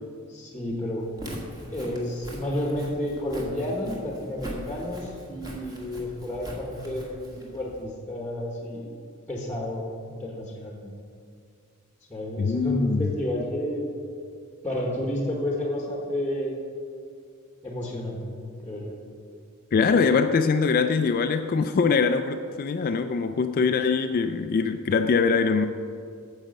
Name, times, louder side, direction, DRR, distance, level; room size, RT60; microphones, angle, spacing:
voice 1, 0.3-1.1 1.7-8.9 9.3-10.9 12.1-13.8 14.6-16.5 17.6-18.2 18.6-18.9, left 1 dB, 10° left, -2 dB, 1.1 m, -31 dB
Walk footsteps, 1.0-7.8, equal, 20° right, 1.5 m, -41 dB
voice 2, 12.4-13.1 19.7-25.7, left 5 dB, 40° left, 8 dB, 0.3 m, -23 dB
9.1 x 7.1 x 5.3 m, 2.3 s
head